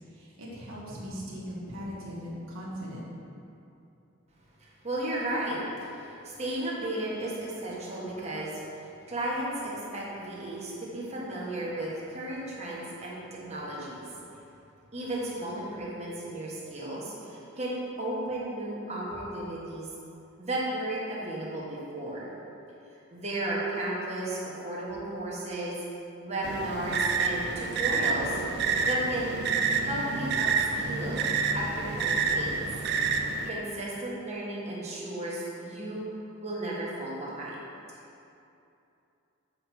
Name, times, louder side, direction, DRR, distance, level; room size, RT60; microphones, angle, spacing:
voice 1, 0.1-3.1, equal, 75° right, -6 dB, 1.6 m, -39 dB
voice 2, 4.6-8.6 9.1-14.0 14.9-19.9 20.4-22.3 23.1-25.8 26.2-28.4 28.8-29.3 29.8-30.5 30.8-32.6 33.4-36.0 36.4-37.6, right 1 dB, 30° right, -6 dB, 1.5 m, -34 dB
sound 1, 26.4-33.5, right 4 dB, 50° right, 0.5 m, -28 dB
7.7 x 5.6 x 4.5 m, 2.8 s
head